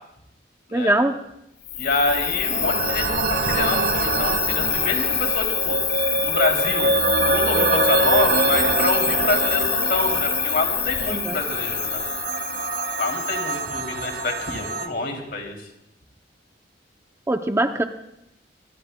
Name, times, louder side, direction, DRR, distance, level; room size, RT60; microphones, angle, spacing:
voice 1, 0.7-1.1 11.1-11.4 17.3-17.8, right 1 dB, 15° right, 7 dB, 0.5 m, -21 dB
Cricket, 1.6-13.6, left 10 dB, 85° left, 3.4 m, -26 dB
voice 2, 1.7-5.8 6.2-6.9 7.3-12.0 13.0-15.6, left 2 dB, 60° left, 3 dB, 2.8 m, -26 dB
sound 1, 2.1-14.9, right 3 dB, 55° right, 1.0 m, -25 dB
25.5 x 18.5 x 2.2 m, 0.80 s
head